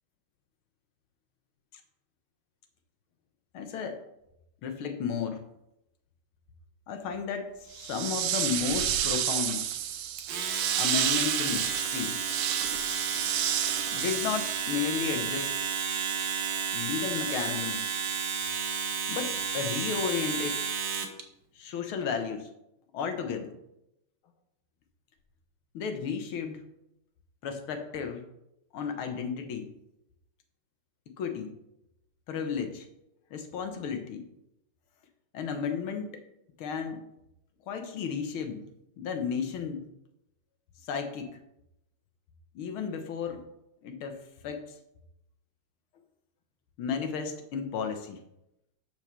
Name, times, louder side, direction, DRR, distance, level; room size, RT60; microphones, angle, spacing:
voice 1, 3.5-4.0 4.6-5.4 6.9-9.6 10.8-12.2 13.9-15.5 16.7-17.8 19.1-20.6 21.6-22.5 22.9-23.6 25.7-26.6 27.4-28.3 28.7-29.7 31.2-31.5 32.3-32.9 33.3-34.3 35.3-36.2 36.6-37.0 37.7-38.7 39.0-39.9 40.8-41.3 42.6-43.4 43.8-44.8 46.8-48.2, left 6 dB, 75° left, 7 dB, 1.9 m, -33 dB
sound 1, 7.7-15.0, right 11 dB, 85° right, 1.6 m, -30 dB
Domestic sounds home sounds, 10.2-21.2, right 6 dB, 65° right, 1.6 m, -32 dB
6.7 x 6.2 x 6.7 m, 0.85 s
omnidirectional pair, 2.3 m